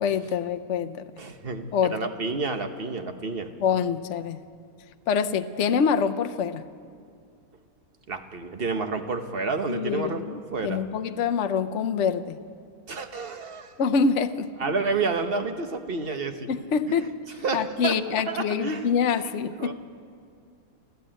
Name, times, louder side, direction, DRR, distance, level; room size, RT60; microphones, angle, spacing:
voice 1, 0.0-1.0 1.7-2.0 3.6-4.4 5.1-6.6 9.7-10.3 10.6-12.4 13.8-14.5 16.5-17.1 17.5-19.7, left 6 dB, 55° left, 9 dB, 1.0 m, -25 dB
voice 2, 1.2-3.5 8.1-10.8 12.9-13.7 14.6-16.5 17.4-18.0 18.3-18.9 19.6-19.7, right 4 dB, 40° right, 7 dB, 1.4 m, -30 dB
28.5 x 13.5 x 9.0 m, 2.4 s
omnidirectional pair, 1.6 m